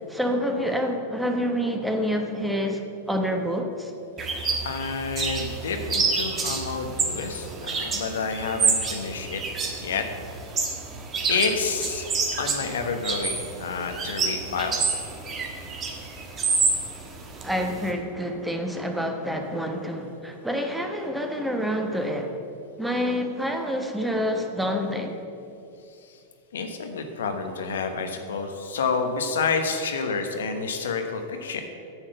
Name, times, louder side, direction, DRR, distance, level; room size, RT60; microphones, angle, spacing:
voice 1, 0.1-3.9 17.4-22.4 22.8-25.2, equal, 5° right, 4 dB, 1.1 m, -27 dB
sound 1, 4.2-17.9, right 4 dB, 30° right, 1.6 m, -28 dB
voice 2, 4.6-9.4 9.8-10.1 11.3-12.1 12.4-14.8 26.0-26.2 26.5-31.6, left 5 dB, 75° left, 5 dB, 1.1 m, -29 dB
9.1 x 7.3 x 6.8 m, 2.6 s
hypercardioid pair, 100°, 0 cm